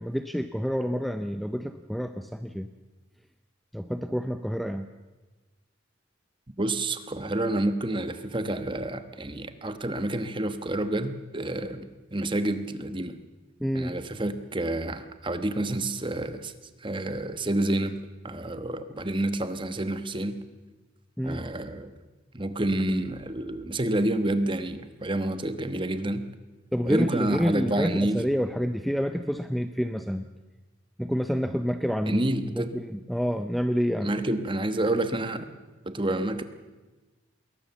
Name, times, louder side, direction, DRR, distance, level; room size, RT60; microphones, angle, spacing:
voice 1, 0.0-2.7 3.7-4.9 13.6-14.0 21.2-21.4 26.7-30.3 31.0-34.1, equal, ahead, 9 dB, 0.6 m, -28 dB
voice 2, 6.6-13.2 13.7-16.5 16.8-18.0 18.2-20.4 21.2-21.9 22.3-26.2 26.8-28.2 32.1-32.7 34.0-35.5 35.8-36.4, right 1 dB, 25° right, 10 dB, 1.2 m, -28 dB
21.5 x 19.0 x 7.1 m, 1.2 s
head